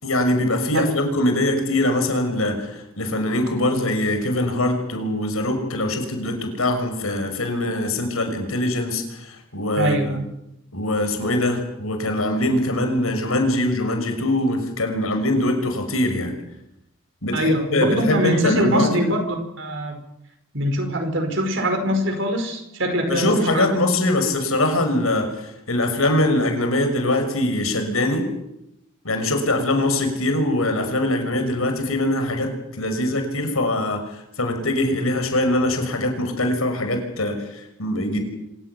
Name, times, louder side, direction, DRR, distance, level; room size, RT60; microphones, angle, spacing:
voice 1, 0.0-10.2 10.7-16.3 17.2-19.0 23.1-28.3 29.0-38.2, left 1 dB, 80° left, 6 dB, 6.2 m, -22 dB
voice 2, 9.8-10.3 17.3-20.0 20.5-23.7, equal, 60° right, 6 dB, 5.0 m, -23 dB
26.0 x 16.0 x 9.6 m, 0.84 s
head